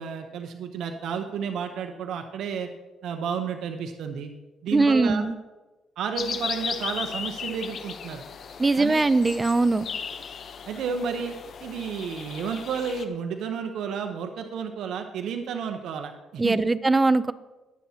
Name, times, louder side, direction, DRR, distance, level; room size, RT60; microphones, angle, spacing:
voice 1, 0.0-2.7 3.0-4.3 4.6-5.3 6.0-8.2 8.8-9.0 10.7-11.3 11.6-16.6, right 6 dB, 80° right, 6 dB, 0.8 m, -31 dB
voice 2, 4.7-5.4 8.6-9.9 16.4-17.3, right 3 dB, 20° right, 15 dB, 0.5 m, -21 dB
sound 1, 6.2-13.0, left 6 dB, 55° left, 0.7 m, -36 dB
20.5 x 8.4 x 2.8 m, 1.1 s
cardioid pair, 90°, 0 cm